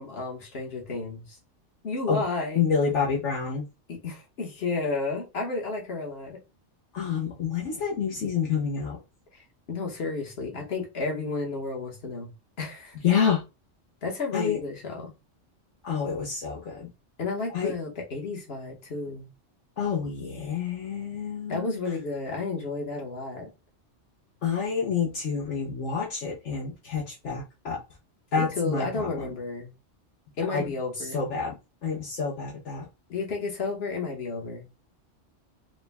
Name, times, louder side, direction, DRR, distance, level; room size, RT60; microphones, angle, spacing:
voice 1, 0.0-1.4 1.8-2.6 3.9-6.4 9.3-9.4 9.7-12.3 12.6-12.9 14.0-15.1 17.2-19.3 21.5-23.5 28.4-29.7 30.4-31.2 33.1-34.6, left 3 dB, 55° left, 1.4 m, -32 dB
voice 2, 2.6-3.7 6.9-9.0 13.0-13.4 14.3-14.6 15.8-16.9 17.5-17.7 19.8-21.8 24.4-27.8 28.3-29.2 30.5-30.6 31.0-31.5 31.8-32.8, left 6 dB, 70° left, 1.2 m, -28 dB
5.0 x 2.2 x 3.4 m
omnidirectional pair, 1.3 m